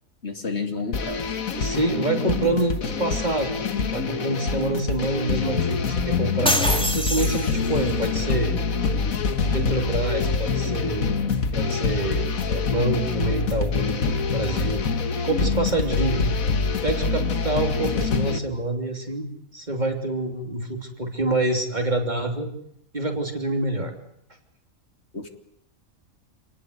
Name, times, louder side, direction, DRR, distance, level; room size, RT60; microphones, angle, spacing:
voice 1, 0.2-1.3 7.5-8.2 15.8-15.9 25.1-25.3, left 4 dB, 50° left, 5 dB, 2.7 m, -31 dB
sound 1, 0.9-18.4, left 4 dB, 80° left, 1.9 m, -25 dB
voice 2, 1.6-3.5 3.9-8.5 9.5-11.1 11.5-14.8 15.2-16.2 16.8-22.5 22.9-23.9, right 2 dB, 30° right, 3 dB, 3.2 m, -27 dB
sound 2, 6.5-7.9, equal, 5° left, 1.9 m, -25 dB
28.0 x 19.0 x 8.0 m, 0.73 s
omnidirectional pair, 1.4 m